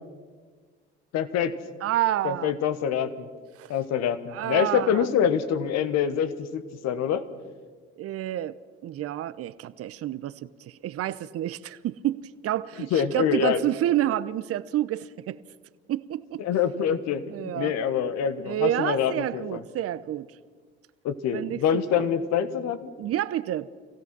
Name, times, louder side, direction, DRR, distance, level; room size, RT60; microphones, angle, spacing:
voice 1, 1.1-1.5 2.2-3.3 3.7-7.2 12.9-13.6 16.4-19.6 21.0-22.9, left 8 dB, 60° left, 1.4 m, -25 dB
voice 2, 1.8-2.6 3.6-3.7 4.3-5.1 8.0-10.3 10.6-15.4 15.9-16.4 17.3-17.7 18.4-20.3 21.3-22.1 23.0-23.7, right 13 dB, 50° right, 0.8 m, -29 dB
26.0 x 16.5 x 6.1 m
hypercardioid pair, 55°, 29 cm